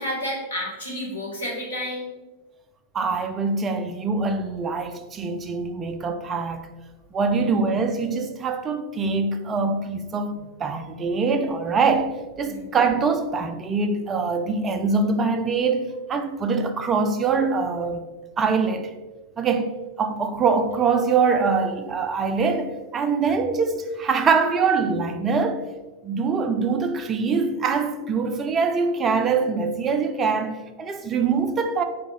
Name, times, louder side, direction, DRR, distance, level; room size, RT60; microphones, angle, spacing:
voice 1, 0.0-2.1 7.3-7.4 12.4-12.8, left 1 dB, 75° left, 1.1 m, -31 dB
voice 2, 2.9-6.7 7.1-18.0 18.4-18.9 19.4-25.6 26.0-31.8, right 4 dB, 25° right, 0.3 m, -24 dB
3.0 x 2.7 x 3.6 m
figure-of-eight pair, 90°, 0 cm